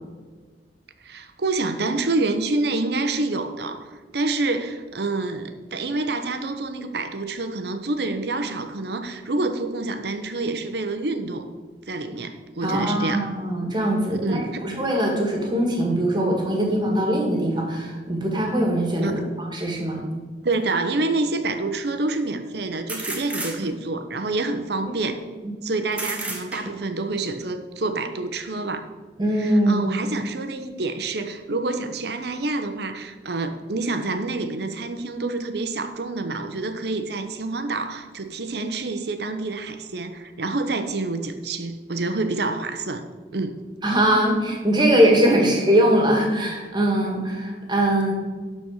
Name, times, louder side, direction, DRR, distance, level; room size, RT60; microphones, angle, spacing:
voice 1, 1.0-11.5 11.9-13.3 14.1-14.6 19.0-19.1 20.4-25.2 25.6-28.8 29.4-43.1 43.3-43.6 45.3-45.5, right 2 dB, 65° right, 8 dB, 0.9 m, -27 dB
voice 2, 12.6-20.0 25.4-25.5 29.2-29.9 43.8-48.1, right 1 dB, 25° right, 1 dB, 1.8 m, -21 dB
sound 1, 20.5-20.6 22.9-24.0 25.9-27.0, right 2 dB, 10° right, 1.3 m, -32 dB
12.0 x 4.4 x 6.5 m, 1.4 s
head